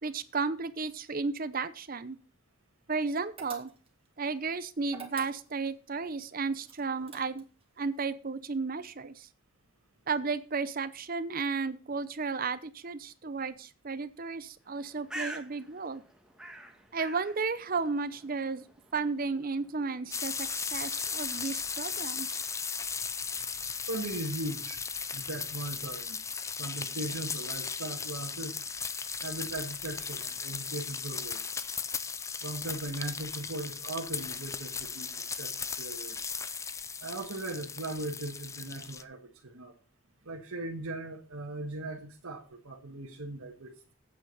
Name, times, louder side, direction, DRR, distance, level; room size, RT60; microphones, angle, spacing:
voice 1, 0.0-2.2 2.9-3.7 4.2-7.5 7.8-9.3 10.1-16.0 16.9-18.6 18.9-22.4, right 4 dB, 40° right, 14 dB, 0.7 m, -33 dB
sound 1, 3.4-4.1 4.9-5.8 6.6-7.6, right 6 dB, 25° right, 1.9 m, -46 dB
Bird, 14.6-22.2, right 1 dB, 5° right, 1.5 m, -48 dB
sound 2, 20.1-39.0, left 5 dB, 15° left, 0.4 m, -37 dB
voice 2, 23.9-24.8 25.1-26.2 26.6-28.6 29.2-31.6 32.4-36.2 37.0-39.7 40.2-43.9, right 2 dB, 90° right, 0 dB, 1.5 m, -39 dB
8.9 x 7.9 x 5.5 m, 0.36 s
head